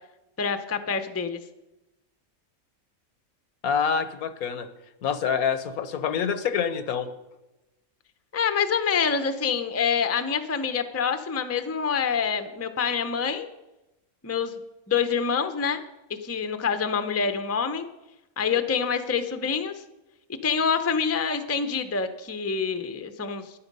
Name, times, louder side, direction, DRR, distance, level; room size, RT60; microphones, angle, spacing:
voice 1, 0.4-1.4 8.3-13.5 14.2-14.6 14.9-15.8 16.2-17.9 18.4-19.8 20.4-23.6, left 6 dB, 20° left, 9 dB, 0.4 m, -26 dB
voice 2, 3.6-4.7 5.0-7.1, left 7 dB, 85° left, 11 dB, 1.3 m, -26 dB
13.0 x 10.0 x 5.4 m, 0.98 s
omnidirectional pair, 1.5 m